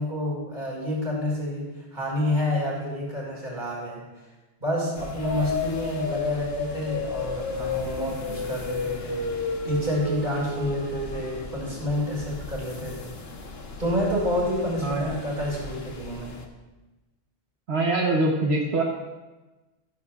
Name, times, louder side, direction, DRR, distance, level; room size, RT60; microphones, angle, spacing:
voice 1, 0.0-4.0 4.6-9.2 9.6-13.1 13.8-16.4, left 1 dB, 50° right, -3 dB, 5.2 m, -29 dB
sound 1, 5.0-16.5, left 3 dB, 75° left, 1.4 m, -33 dB
voice 2, 14.8-15.2 17.7-18.8, right 2 dB, 80° right, -1 dB, 1.4 m, -24 dB
15.0 x 14.0 x 2.4 m, 1.1 s
omnidirectional pair, 1.1 m